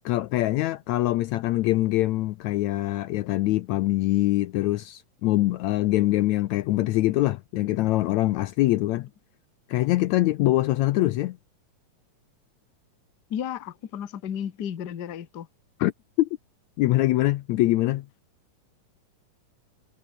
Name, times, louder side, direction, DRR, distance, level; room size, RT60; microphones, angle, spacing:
voice 1, 0.1-9.1 9.7-11.4 15.8-15.9 16.2-16.3 16.8-18.1, left 16 dB, 75° left, 1.8 m, -23 dB
voice 2, 13.3-15.5, left 9 dB, 50° left, 1.3 m, -33 dB
omnidirectional pair, 3.7 m